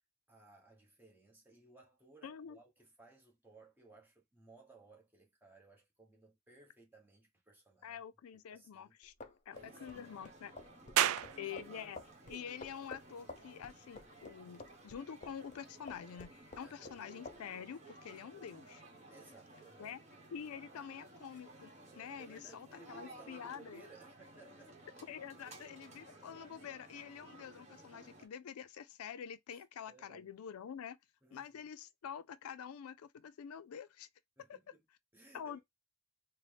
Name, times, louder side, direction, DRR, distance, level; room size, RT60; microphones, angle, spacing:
voice 1, 0.3-8.0 8.3-9.0 9.5-10.5 11.0-11.4 16.6-17.1 19.1-20.0 22.2-24.8 29.5-30.3 31.2-31.7 34.4-34.8 35.1-35.6, right 3 dB, 10° right, 1.1 m, -61 dB
voice 2, 2.2-2.6 7.8-9.1 9.5-10.5 11.4-12.0 12.3-18.8 19.8-20.0 20.3-23.8 25.1-31.0 31.3-34.1 34.5-34.6 35.3-35.6, left 8 dB, 90° left, 0.4 m, -47 dB
sound 1, 9.0-15.6 15.9-17.0 17.3-17.4, left 3 dB, 35° left, 0.5 m, -50 dB
sound 2, 9.5-28.3, right 2 dB, 30° right, 1.1 m, -56 dB
sound 3, 11.0-24.1, right 11 dB, 80° right, 0.3 m, -43 dB
4.1 x 2.1 x 3.3 m
head